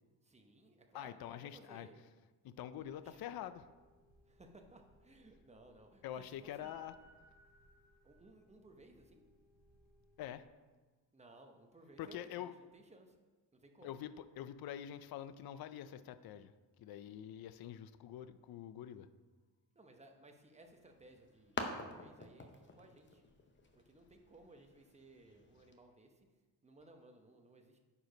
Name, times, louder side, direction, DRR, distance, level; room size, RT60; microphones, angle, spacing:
voice 1, 0.2-2.0 2.7-3.4 4.3-6.8 8.0-9.2 11.1-13.2 13.5-14.0 18.9-19.0 19.7-23.2 23.7-26.3 26.6-27.8, right 2 dB, 15° right, 4 dB, 0.8 m, -60 dB
voice 2, 0.9-1.9 2.4-3.6 6.0-6.9 10.2-10.5 12.0-12.5 13.8-19.1, left 11 dB, 60° left, 13 dB, 0.5 m, -46 dB
sound 1, 2.7-10.4, equal, 40° right, 2.6 m, -67 dB
sound 2, 20.6-25.8, left 3 dB, 25° left, 0.8 m, -48 dB
9.6 x 4.6 x 5.2 m, 1.3 s
cardioid pair, 140°, 43 cm